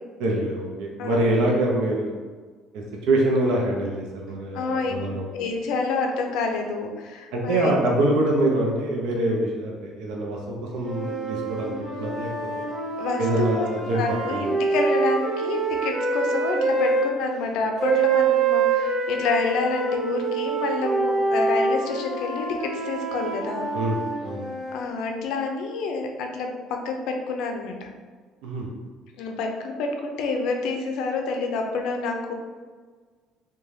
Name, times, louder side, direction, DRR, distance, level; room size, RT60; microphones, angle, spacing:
voice 1, 0.2-2.1 3.1-5.3 7.3-11.7 12.0-12.3 13.2-14.4 23.7-24.5 28.4-28.7, right 1 dB, 80° right, -1 dB, 0.5 m, -24 dB
voice 2, 1.0-1.4 4.5-4.9 5.3-7.8 13.0-23.7 24.7-27.9 29.2-32.3, left 3 dB, 75° left, 3 dB, 0.4 m, -28 dB
sound 1, 10.8-17.1 17.8-24.9, right 4 dB, 45° right, 0.8 m, -26 dB
2.5 x 2.2 x 3.2 m, 1.5 s
cardioid pair, 175°, 0 cm